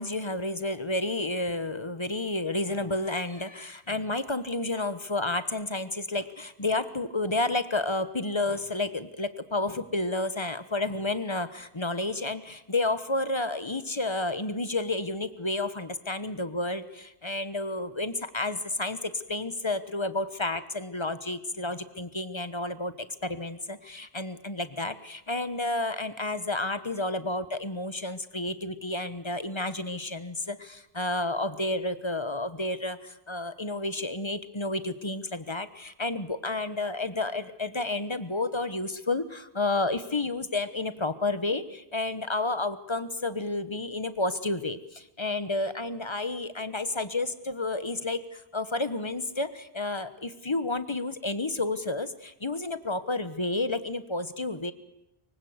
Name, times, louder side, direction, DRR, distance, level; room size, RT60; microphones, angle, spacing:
voice 1, 0.0-22.9 23.2-54.7, left 2 dB, 30° left, 12 dB, 1.2 m, -31 dB
24.0 x 24.0 x 8.1 m, 0.88 s
omnidirectional pair, 1.0 m